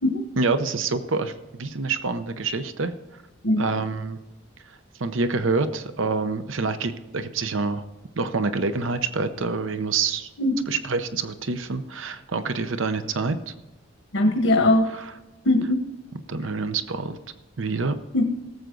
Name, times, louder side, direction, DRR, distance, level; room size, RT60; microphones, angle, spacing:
voice 1, 0.4-1.3 1.6-3.2 3.6-4.2 4.7-7.8 8.2-10.3 10.7-13.5 14.8-15.2 16.3-17.2 17.6-18.0, right 4 dB, 85° right, 11 dB, 0.8 m, -27 dB
voice 2, 14.1-14.9 15.4-15.8 18.1-18.2, left 1 dB, 85° left, 3 dB, 1.3 m, -20 dB
17.5 x 8.0 x 3.9 m, 1.1 s
head